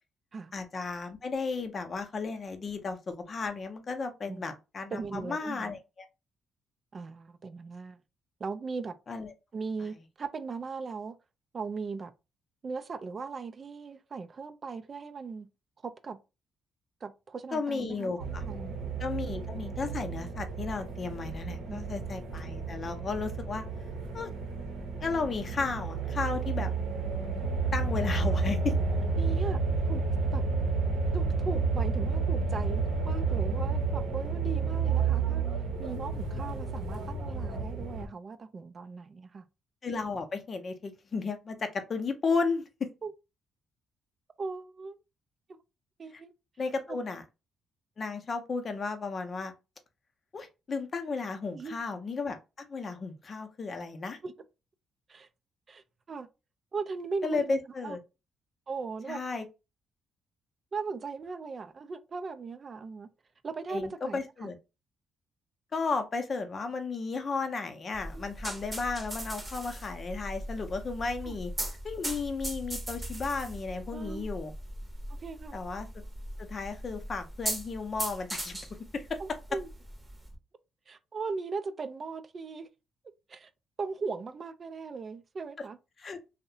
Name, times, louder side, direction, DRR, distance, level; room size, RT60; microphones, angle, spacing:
voice 1, 0.5-5.8 9.1-9.3 17.5-18.4 19.0-23.6 24.1-24.3 25.0-26.7 27.7-28.7 39.8-42.9 46.6-47.2 48.0-49.5 50.3-52.4 52.7-54.2 57.2-58.0 59.1-59.5 63.7-64.6 65.7-71.5 71.8-74.5 75.5-76.0 76.4-78.6 78.9-79.2 86.0-86.2, left 4 dB, 40° left, 0.5 m, -34 dB
voice 2, 4.9-5.7 6.9-8.0 8.4-8.9 9.5-11.2 11.5-12.1 12.6-15.5 15.8-16.2 17.0-18.8 21.7-22.0 28.8-30.0 30.3-30.4 31.1-35.4 35.8-39.4 43.0-43.1 44.4-45.0 46.0-46.3 46.9-47.0 51.5-51.8 54.2-54.3 55.1-55.3 55.7-56.3 56.7-57.5 57.8-58.0 58.7-59.2 60.7-63.1 63.4-64.2 68.1-68.3 71.2-71.4 73.9-74.3 75.1-75.6 79.2-79.7 80.9-82.7 83.3-83.5 83.8-85.8, right 4 dB, 40° right, 0.3 m, -38 dB
sound 1, 18.2-38.1, right 4 dB, 80° right, 0.7 m, -31 dB
sound 2, 67.9-80.3, right 1 dB, 15° right, 0.7 m, -39 dB
2.6 x 2.0 x 2.6 m
cardioid pair, 90°, 0 cm